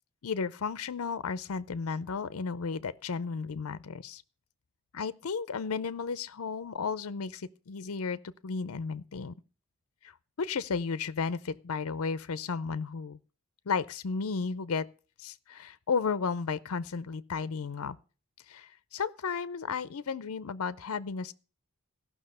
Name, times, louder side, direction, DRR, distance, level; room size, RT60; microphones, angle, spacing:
voice 1, 0.2-4.2 4.9-9.3 10.0-13.2 13.7-14.9 15.2-18.0 18.5-21.3, left 5 dB, 70° left, 0.5 m, -34 dB
15.5 x 6.0 x 6.6 m
head